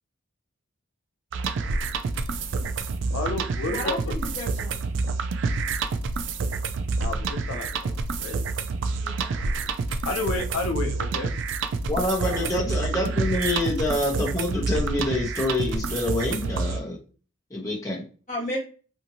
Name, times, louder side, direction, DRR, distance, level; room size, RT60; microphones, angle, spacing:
sound 1, 1.3-16.8, right 4 dB, 65° right, 0.3 m, -28 dB
voice 1, 3.1-4.2 7.0-8.4 10.0-11.3 12.2-12.5, left 3 dB, 90° left, 4 dB, 0.5 m, -31 dB
voice 2, 3.7-4.7 9.0-9.4 18.3-18.6, left 1 dB, 35° left, -3 dB, 1.2 m, -33 dB
voice 3, 11.9-17.0 17.5-18.0, left 1 dB, 15° left, -4 dB, 0.6 m, -26 dB
2.7 x 2.5 x 2.7 m, 0.37 s
head